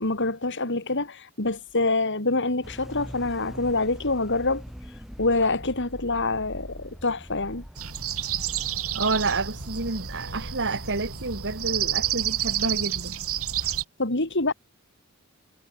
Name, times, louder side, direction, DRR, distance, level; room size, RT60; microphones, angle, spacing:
voice 1, 0.0-4.6 5.2-7.6 14.0-14.5, left 2 dB, 55° left, 3.9 m, -26 dB
sound 1, 2.6-12.9, equal, ahead, 3.5 m, -43 dB
sound 2, 7.8-13.8, right 11 dB, 75° right, 3.4 m, -30 dB
voice 2, 8.9-13.2, right 3 dB, 55° right, 2.8 m, -29 dB
head